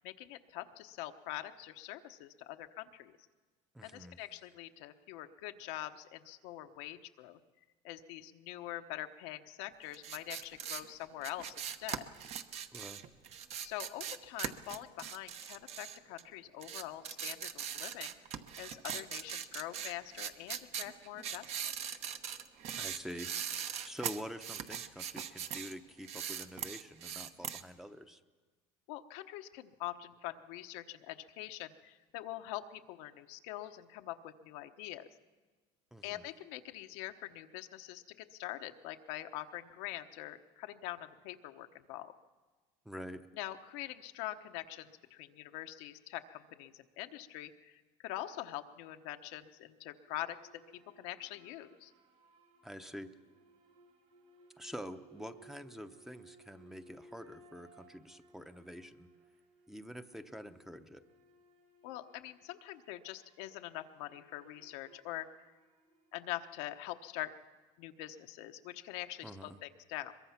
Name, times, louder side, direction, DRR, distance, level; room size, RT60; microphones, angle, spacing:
voice 1, 0.0-3.1 3.8-7.4 7.8-12.0 13.6-18.1 18.6-21.4 28.9-35.1 36.0-42.1 43.3-50.4 51.0-51.9 61.8-65.3 66.1-67.3 67.8-70.1, left 14 dB, 80° left, 7 dB, 1.0 m, -44 dB
voice 2, 3.7-4.2 12.7-13.0 22.8-28.2 35.9-36.3 42.8-43.3 52.6-53.1 54.6-59.1 59.7-61.0 69.2-69.6, equal, 5° right, 8 dB, 0.8 m, -47 dB
sound 1, 9.9-16.3 16.6-25.7 26.0-27.6, right 8 dB, 50° right, 1.1 m, -41 dB
sound 2, 49.9-66.5, right 2 dB, 65° right, 6.0 m, -62 dB
22.5 x 22.0 x 5.9 m, 1.3 s
cardioid pair, 130°, 14 cm